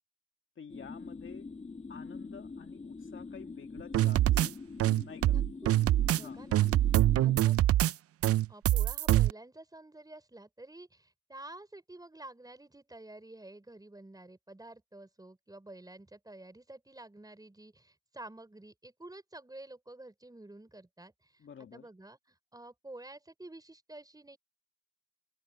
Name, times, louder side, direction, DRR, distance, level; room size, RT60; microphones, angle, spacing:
voice 1, 0.6-1.5 1.9-4.6 5.0-5.4 6.2-6.5 21.4-21.9, left 6 dB, 40° left, 2.1 m, -50 dB
sound 1, 0.7-7.4, left 4 dB, 25° left, 1.8 m, -44 dB
sound 2, 3.9-4.5 4.8-6.2 6.5-7.9 8.2-9.3, right 13 dB, 50° right, 0.5 m, -25 dB
voice 2, 5.2-5.8 6.1-6.7 7.1-7.6 8.5-21.4 21.7-22.2 22.5-24.4, right 2 dB, 10° right, 5.8 m, -50 dB
cardioid pair, 90°, 30 cm